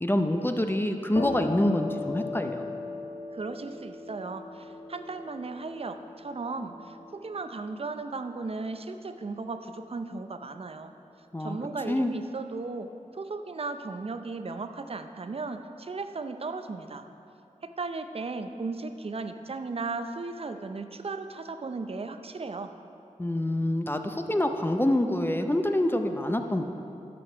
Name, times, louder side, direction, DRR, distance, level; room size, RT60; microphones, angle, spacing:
voice 1, 0.0-2.6 11.3-11.6 11.9-12.1 23.2-26.6, left 1 dB, 15° left, 5 dB, 0.5 m, -26 dB
sound 1, 1.1-8.6, left 3 dB, 35° left, 1.4 m, -39 dB
voice 2, 3.3-10.9 11.4-17.1 17.6-22.7, right 3 dB, 45° right, 8 dB, 0.5 m, -36 dB
12.5 x 5.3 x 4.9 m, 2.8 s
wide cardioid pair, 60°, 13 cm